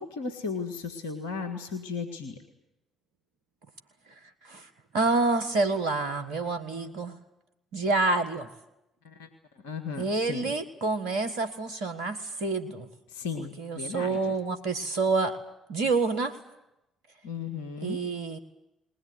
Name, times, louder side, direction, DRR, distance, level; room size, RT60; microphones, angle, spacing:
voice 1, 0.0-2.4 9.0-9.3 9.6-10.5 13.1-14.3 17.2-18.0, left 5 dB, 80° left, 6 dB, 1.7 m, -35 dB
voice 2, 4.9-7.1 7.7-8.5 10.0-12.9 13.4-15.4 15.7-16.4 17.8-18.4, right 3 dB, 75° right, 6 dB, 1.6 m, -28 dB
20.5 x 19.5 x 9.6 m, 0.89 s
hypercardioid pair, 50°, 0 cm